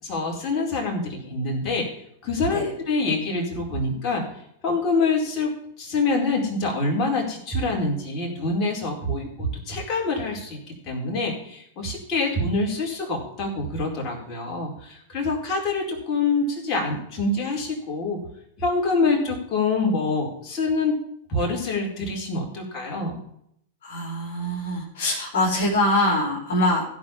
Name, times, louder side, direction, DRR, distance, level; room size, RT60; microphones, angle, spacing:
voice 1, 0.0-1.9 2.2-4.2 4.6-5.5 5.8-10.6 10.9-18.2 18.6-21.0 21.3-23.2, left 3 dB, 35° left, -1 dB, 4.6 m, -25 dB
voice 2, 23.8-26.8, left 1 dB, 60° left, -1 dB, 3.3 m, -23 dB
16.0 x 5.3 x 7.2 m, 0.71 s
figure-of-eight pair, 95°, 0 cm